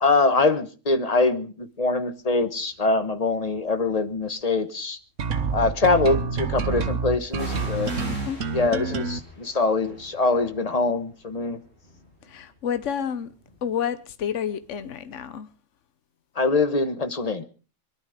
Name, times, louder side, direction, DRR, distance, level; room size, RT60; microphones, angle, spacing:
voice 1, 0.0-5.0 5.5-7.9 8.5-11.6 16.4-17.4, left 3 dB, 30° left, 1.2 m, -23 dB
sound 1, 2.4-2.7 3.5-4.4 7.3-15.0 15.2-15.3, left 1 dB, 55° left, 6.2 m, -44 dB
sound 2, 5.2-9.2, right 5 dB, 75° right, 1.4 m, -27 dB
voice 2, 8.1-8.4 12.3-13.3 13.6-15.5, left 8 dB, 70° left, 1.3 m, -29 dB
22.0 x 11.5 x 5.0 m
omnidirectional pair, 1.3 m